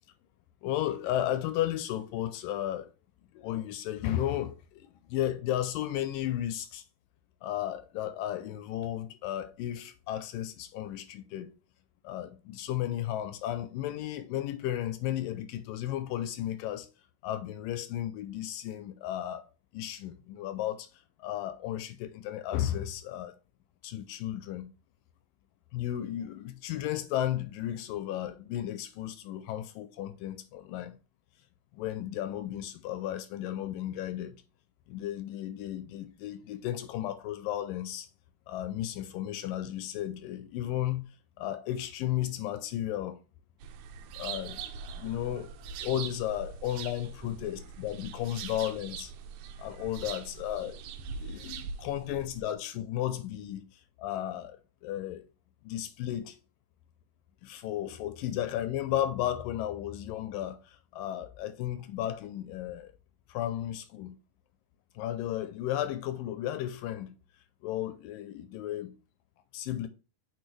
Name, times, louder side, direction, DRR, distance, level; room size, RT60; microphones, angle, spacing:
voice 1, 0.6-2.9 3.3-6.8 7.4-11.5 12.0-16.9 17.2-19.5 19.7-23.4 23.8-24.7 25.7-31.0 31.7-34.4 34.9-38.1 38.5-41.1 41.4-43.2 44.2-45.5 45.8-49.1 49.6-50.8 51.1-53.6 54.0-55.2 55.6-56.4 57.4-62.9 63.3-64.2 65.0-67.2 67.6-68.9 69.5-69.9, left 12 dB, 80° left, 2.1 m, -34 dB
sound 1, 43.6-52.5, right 6 dB, 80° right, 2.5 m, -42 dB
8.0 x 4.6 x 3.2 m
omnidirectional pair, 4.4 m